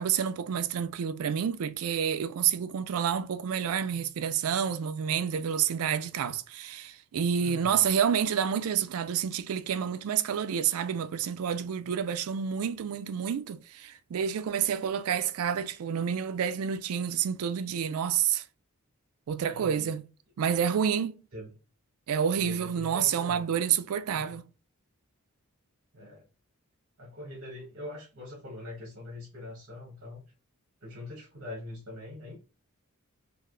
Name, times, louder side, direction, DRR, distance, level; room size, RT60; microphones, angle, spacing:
voice 1, 0.0-18.4 19.3-20.1 20.4-21.2 22.1-24.5, right 8 dB, 75° right, 0.3 m, -29 dB
voice 2, 7.4-7.8 19.5-19.9 21.3-21.5 22.4-23.5 24.1-24.4 25.9-26.3 27.0-30.2 30.8-32.4, left 1 dB, 60° right, 1.0 m, -43 dB
3.2 x 2.4 x 2.3 m
head